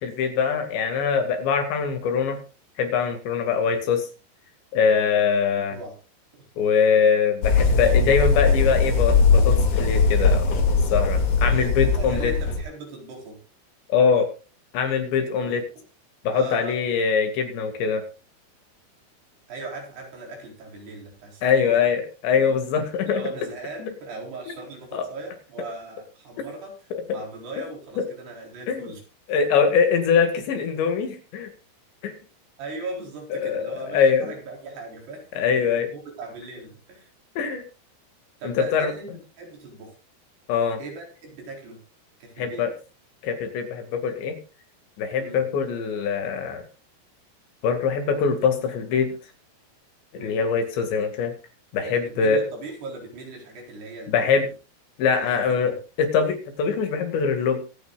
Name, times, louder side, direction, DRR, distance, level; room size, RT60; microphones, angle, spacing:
voice 1, 0.0-2.4 2.8-4.1 4.7-5.8 6.6-10.5 10.9-12.3 13.9-14.3 14.7-15.6 16.2-18.0 21.4-23.2 24.9-25.1 26.9-27.2 27.6-27.7 28.0-28.1 28.7-28.9 29.3-31.5 32.0-32.1 33.3-34.4 35.4-35.9 37.4-37.6 38.4-38.9 40.5-40.8 42.4-42.7 43.2-44.4 45.0-46.6 47.6-49.1 50.1-51.3 51.7-52.4 54.1-54.5 55.0-57.6, left 6 dB, 80° left, 6 dB, 4.5 m, -23 dB
sound 1, 7.4-12.6, left 4 dB, 50° left, 3.6 m, -20 dB
voice 2, 11.9-13.4 15.4-15.5 16.3-16.8 19.5-21.9 22.3-22.6 23.1-26.8 27.1-29.0 32.6-35.2 35.5-37.1 38.4-39.1 39.4-39.9 40.8-41.8 42.2-42.7 45.2-45.4 50.1-50.4 51.8-54.4 55.2-55.8, right 3 dB, 65° right, 0 dB, 6.2 m, -38 dB
24.5 x 9.4 x 2.5 m, 0.32 s
omnidirectional pair, 5.0 m